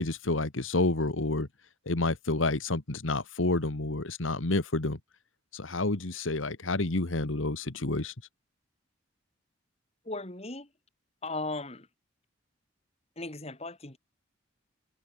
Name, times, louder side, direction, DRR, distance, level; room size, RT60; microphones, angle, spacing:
voice 1, 0.0-1.5 1.8-5.0 5.5-8.1, left 2 dB, 85° left, 1.7 m, -29 dB
voice 2, 10.0-10.7 11.2-11.9 13.2-14.0, left 2 dB, 30° left, 3.0 m, -37 dB
head